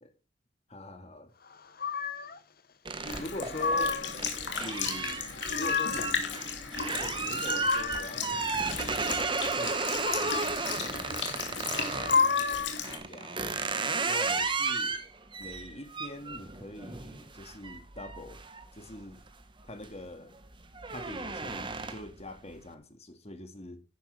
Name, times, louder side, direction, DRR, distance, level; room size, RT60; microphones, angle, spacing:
voice 1, 0.7-1.3 3.2-4.0 4.6-5.3 5.6-6.4 6.9-13.4 14.0-15.0 15.4-18.4 18.7-19.2 19.6-20.4 20.9-23.8, left 1 dB, 35° left, 2.0 m, -44 dB
sound 1, 1.8-2.4 3.2-4.2 5.2-6.2 7.1-8.3 9.8-10.7 11.8-12.8, left 5 dB, 50° left, 1.0 m, -30 dB
sound 2, 2.8-12.2 12.8-19.3 19.7-20.1 20.4-22.2, right 4 dB, 25° right, 1.4 m, -34 dB
Sink (filling or washing) / Liquid, 3.1-13.0, left 6 dB, 80° left, 3.0 m, -36 dB
12.0 x 10.5 x 3.4 m
head